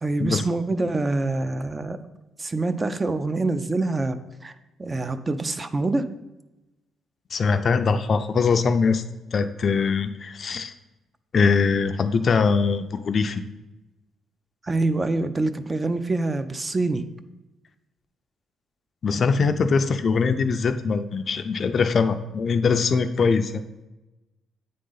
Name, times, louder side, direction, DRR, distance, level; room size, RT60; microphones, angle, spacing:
voice 1, 0.0-2.0 2.4-4.2 4.4-4.5 4.8-6.0 14.6-17.0, right 2 dB, 25° right, 10 dB, 0.4 m, -25 dB
voice 2, 7.3-9.0 9.3-10.7 11.3-13.4 19.0-23.6, left 5 dB, 50° left, 10 dB, 0.4 m, -22 dB
8.5 x 3.7 x 3.9 m, 1.0 s
cardioid pair, 90°, 0 cm